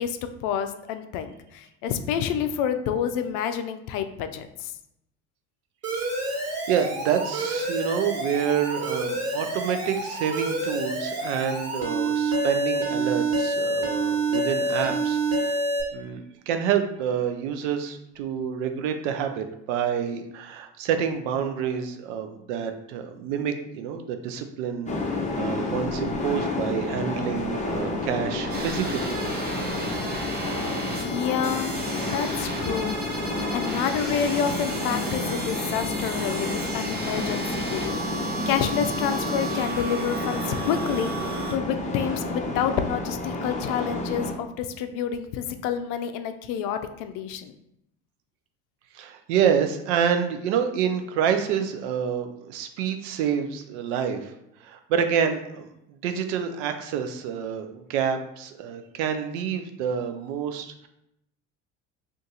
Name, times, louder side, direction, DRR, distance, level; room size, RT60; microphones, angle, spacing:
voice 1, 0.0-4.7 30.9-31.7 32.1-33.0 33.5-47.5, left 8 dB, 65° left, 9 dB, 0.5 m, -28 dB
Alarm, 5.8-15.8, right 2 dB, 40° right, 1.4 m, -27 dB
voice 2, 6.4-15.6 15.9-29.2 48.9-54.3 54.6-55.7 56.0-60.9, right 8 dB, 75° right, 6 dB, 0.5 m, -28 dB
sound 1, 24.8-44.3, left 2 dB, 20° left, 0.7 m, -30 dB
sound 2, 28.5-41.5, right 2 dB, 25° right, 0.8 m, -34 dB
2.7 x 2.5 x 3.7 m, 0.81 s
hypercardioid pair, 70°, 36 cm